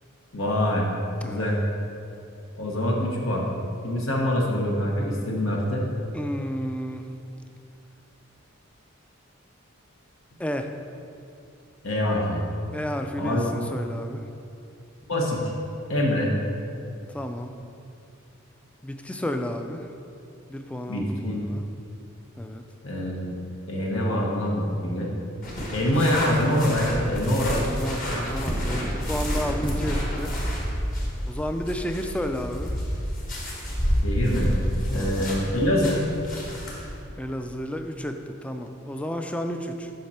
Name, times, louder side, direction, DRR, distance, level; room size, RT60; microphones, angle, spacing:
voice 1, 0.3-0.9 1.2-1.6 2.6-3.5 3.8-5.9 11.8-12.4 13.2-13.5 15.1-15.5 15.9-16.4 20.9-21.5 22.8-23.3 23.7-25.2 25.7-27.8 34.0-34.6 34.9-36.0, left 1 dB, 80° left, -2 dB, 1.1 m, -25 dB
voice 2, 1.2-1.6 6.1-7.1 10.4-10.7 12.7-14.3 17.1-17.6 18.8-19.9 20.5-21.6 22.4-22.6 25.6-26.1 27.5-30.3 31.3-32.8 34.9-35.3 36.3-36.4 37.2-39.9, equal, 5° left, 6 dB, 0.3 m, -32 dB
sound 1, 25.4-37.0, equal, 40° left, 1.4 m, -29 dB
7.8 x 5.8 x 4.3 m, 2.6 s
head